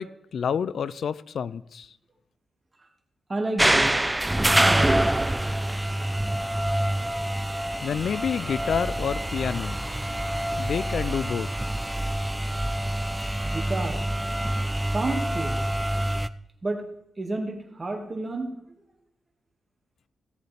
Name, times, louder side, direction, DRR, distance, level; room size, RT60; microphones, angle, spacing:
voice 1, 0.0-1.9 7.8-9.8 10.6-11.5, left 7 dB, 70° left, 19 dB, 0.4 m, -29 dB
voice 2, 3.3-3.9 4.6-5.0 12.6-12.8 13.4-14.1 14.9-15.7 16.6-16.8 17.2-18.5, right 2 dB, 35° right, 3 dB, 2.0 m, -30 dB
sound 1, 3.6-16.3, right 1 dB, 15° right, 0.4 m, -26 dB
16.5 x 7.7 x 3.4 m, 0.81 s
supercardioid pair, 55°, 0 cm